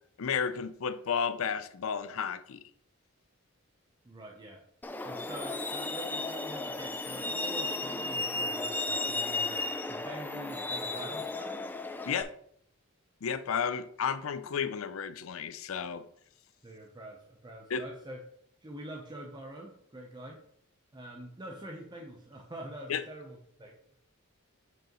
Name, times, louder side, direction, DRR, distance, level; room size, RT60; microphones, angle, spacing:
voice 1, 0.2-2.6 12.1-12.3 13.2-16.1 17.7-17.8 22.9-23.0, left 6 dB, 70° left, 0.5 m, -32 dB
voice 2, 4.0-4.6 5.0-11.7 16.6-18.2 18.6-20.4 20.9-24.0, right 1 dB, 20° right, 0.7 m, -45 dB
Truck, 4.8-12.2, left 2 dB, 10° left, 0.3 m, -34 dB
7.8 x 4.8 x 3.0 m
head